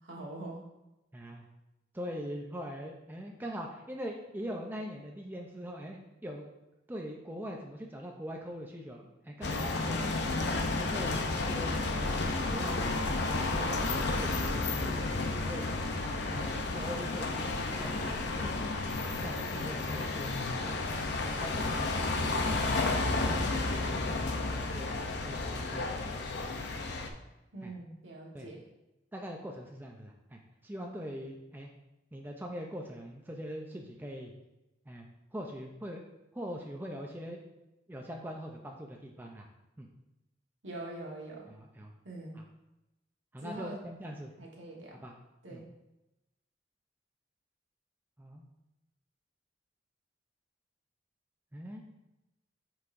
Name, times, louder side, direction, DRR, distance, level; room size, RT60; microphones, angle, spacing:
voice 1, 0.0-0.7 27.5-28.6 40.6-41.5 42.0-42.4 43.4-43.8 44.4-45.0 45.4-45.7, right 2 dB, 90° right, -2 dB, 1.4 m, -43 dB
voice 2, 1.1-1.5 1.9-6.5 6.9-10.1 10.7-11.9 12.5-15.6 16.3-18.5 19.2-20.3 20.6-20.8 21.4-24.9 25.2-26.3 26.6-26.7 27.6-27.7 28.3-28.5 29.1-31.7 32.1-34.3 34.9-35.1 35.3-36.0 36.3-37.4 37.9-39.5 39.8-39.9 41.5-41.9 43.3-44.3 45.0-45.1 45.5-45.6 48.2-48.5 51.5-51.9, equal, 10° right, 1 dB, 0.5 m, -42 dB
sound 1, 9.4-27.1, left 3 dB, 65° left, 0.6 m, -32 dB
8.2 x 4.7 x 2.6 m, 0.96 s
head